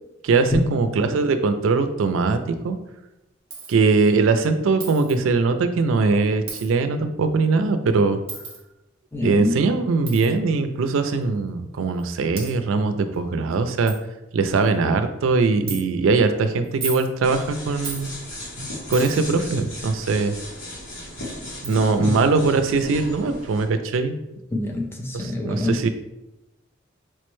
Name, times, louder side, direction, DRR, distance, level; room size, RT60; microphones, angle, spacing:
voice 1, 0.2-2.8 3.7-8.2 9.2-13.9 14.3-18.1 18.9-20.3 21.6-24.2 25.1-25.9, right 4 dB, 80° right, 9 dB, 0.4 m, -21 dB
Coin (dropping), 3.5-3.8 4.8-5.2 6.5-6.7 8.3-8.6 10.1-10.3 11.2-11.3 12.0-12.1 12.4-12.5 13.1-13.2 13.5-13.6 13.9-14.0 14.4-14.8 15.7-15.8 16.6-17.1 17.8-18.1 18.9-19.3 20.9-21.0 21.6-21.8, right 4 dB, 30° right, 0.7 m, -34 dB
voice 2, 9.1-9.6 22.0-22.2 24.5-25.9, left 2 dB, 10° left, 1 dB, 0.4 m, -25 dB
sound 1, 17.2-23.6, left 1 dB, 80° left, 1.1 m, -36 dB
4.5 x 2.1 x 3.0 m, 0.92 s
head